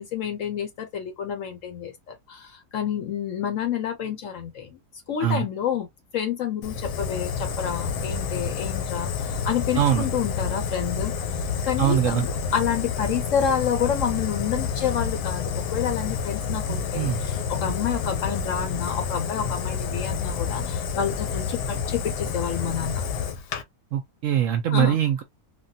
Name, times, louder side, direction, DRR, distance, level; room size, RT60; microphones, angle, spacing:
voice 1, 0.0-4.8 5.1-5.9 6.1-11.1 11.6-23.0 24.7-25.0, left 8 dB, 65° left, 0.8 m, -29 dB
Fire, 6.6-23.6, left 6 dB, 85° left, 1.2 m, -29 dB
voice 2, 9.8-10.1 11.8-12.2 16.7-17.2 23.9-25.2, right 10 dB, 70° right, 0.8 m, -23 dB
3.4 x 2.3 x 2.6 m
omnidirectional pair, 1.7 m